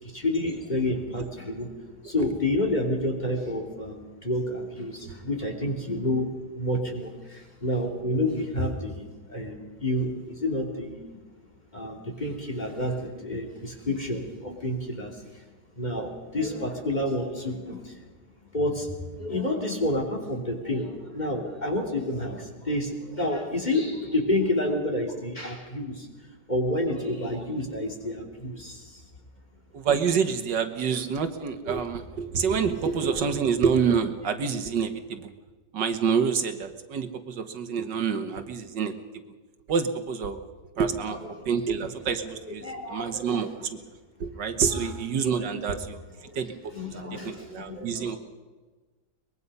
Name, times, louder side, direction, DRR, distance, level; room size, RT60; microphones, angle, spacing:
voice 1, 0.0-1.7 2.0-11.2 11.7-15.4 15.7-18.0 18.5-26.1 26.5-29.0 32.6-33.3 40.9-41.9 42.2-43.7 44.5-44.9 45.4-45.7 46.1-48.2, left 1 dB, 25° left, 1 dB, 3.0 m, -30 dB
voice 2, 29.7-35.3 35.7-38.9 39.7-40.4 40.8-41.2 41.5-42.6 42.9-43.8 44.2-46.0 46.4-48.2, right 6 dB, 80° right, 8 dB, 2.0 m, -27 dB
23.5 x 21.0 x 5.5 m, 1.3 s
omnidirectional pair, 1.9 m